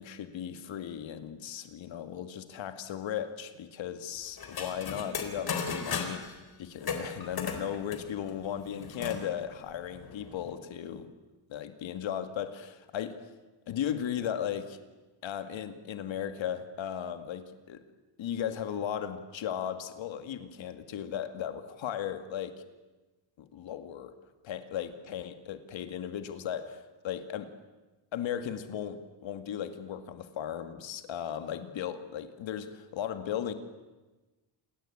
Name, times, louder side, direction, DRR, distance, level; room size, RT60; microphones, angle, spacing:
voice 1, 0.0-11.1 11.5-13.2 13.7-14.8 15.2-17.8 18.2-22.6 23.4-24.1 24.4-27.5 28.1-33.5, left 9 dB, 70° left, 10 dB, 2.2 m, -36 dB
sound 1, 4.4-6.3 6.8-9.2 9.6-9.7 9.9-10.6, left 5 dB, 50° left, 4.0 m, -36 dB
28.5 x 22.0 x 8.8 m, 1.2 s
cardioid pair, 130°, 47 cm